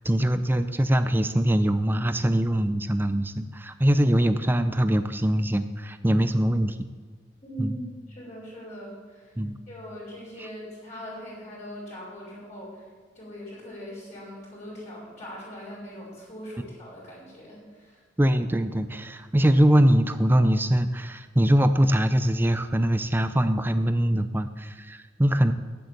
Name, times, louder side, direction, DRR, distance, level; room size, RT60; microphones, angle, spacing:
voice 1, 0.0-6.8 7.6-7.8 9.4-9.6 18.2-25.5, right 1 dB, 10° right, 10 dB, 0.5 m, -22 dB
voice 2, 7.4-7.9 8.1-9.3 9.7-12.8 13.1-18.0, equal, 35° left, -8 dB, 4.6 m, -40 dB
9.4 x 8.4 x 8.1 m, 1.5 s
head